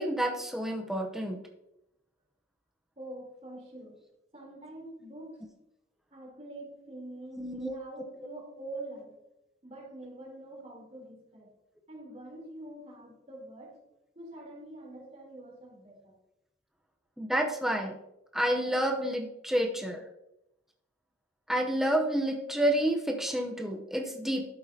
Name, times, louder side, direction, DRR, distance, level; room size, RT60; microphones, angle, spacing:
voice 1, 0.0-1.4 7.4-7.8 17.2-17.9 18.3-20.0 21.5-24.5, right 1 dB, ahead, 2 dB, 0.7 m, -29 dB
voice 2, 3.0-4.0 4.3-5.4 6.1-9.1 9.6-11.5 11.9-13.7 14.1-16.1, right 1 dB, 35° right, -2 dB, 3.4 m, -45 dB
11.5 x 8.5 x 2.8 m, 0.88 s
head